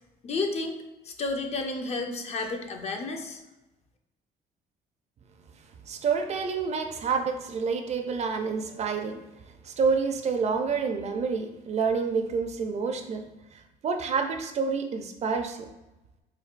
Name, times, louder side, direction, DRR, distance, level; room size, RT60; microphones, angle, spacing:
voice 1, 0.2-0.8 1.0-3.4, left 3 dB, 40° left, 4 dB, 0.5 m, -31 dB
voice 2, 5.9-9.2 9.6-13.2 13.8-15.7, right 5 dB, 40° right, 6 dB, 0.4 m, -28 dB
4.5 x 2.6 x 2.4 m, 0.97 s
cardioid pair, 110°, 17 cm